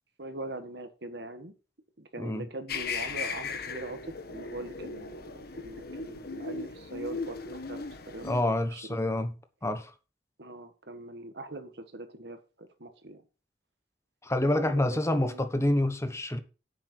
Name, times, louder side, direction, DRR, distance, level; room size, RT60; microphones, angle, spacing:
voice 1, 0.2-1.5 2.0-9.0 10.4-13.2 14.4-15.7, right 2 dB, 65° right, 1.8 m, -42 dB
sound 1, 2.7-8.4, left 4 dB, 60° left, 1.4 m, -37 dB
voice 2, 8.2-9.3 9.6-9.9 14.2-16.4, left 1 dB, 15° left, 1.1 m, -27 dB
10.5 x 8.2 x 4.6 m
head